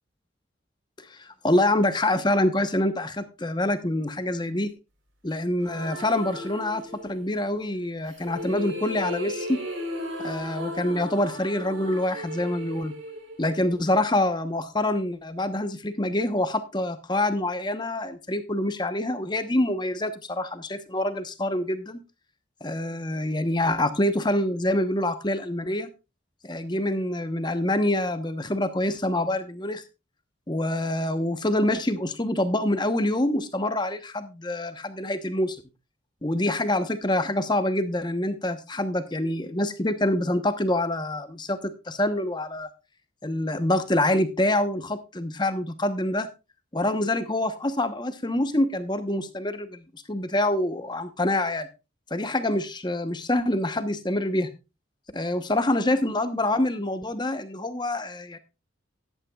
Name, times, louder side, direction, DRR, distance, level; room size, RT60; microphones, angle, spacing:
voice 1, 1.0-4.7 5.2-9.6 10.2-12.9 13.4-22.0 22.6-25.9 26.4-29.8 30.5-35.6 36.2-42.7 43.2-46.3 46.7-51.7 52.1-54.5 55.1-58.4, left 1 dB, 20° left, 10 dB, 1.0 m, -26 dB
sound 1, 5.6-7.3 8.0-14.1, left 1 dB, 85° right, 3.9 m, -36 dB
15.0 x 11.0 x 2.4 m, 0.27 s
head